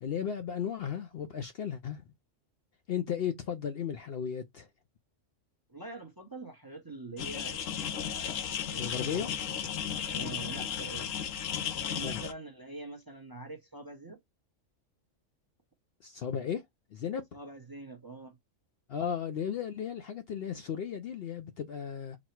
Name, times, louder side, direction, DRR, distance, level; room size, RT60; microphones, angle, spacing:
voice 1, 0.0-2.0 2.9-4.7 8.8-9.3 12.0-12.2 16.0-16.6 16.9-17.2 18.9-22.2, left 8 dB, 60° left, 0.7 m, -35 dB
voice 2, 5.7-8.4 8.7-9.3 10.1-11.1 11.8-14.2 17.3-18.4, right 3 dB, 20° right, 0.7 m, -45 dB
sound 1, 7.2-12.3, left 8 dB, 75° left, 1.1 m, -35 dB
4.1 x 2.1 x 4.4 m
omnidirectional pair, 1.3 m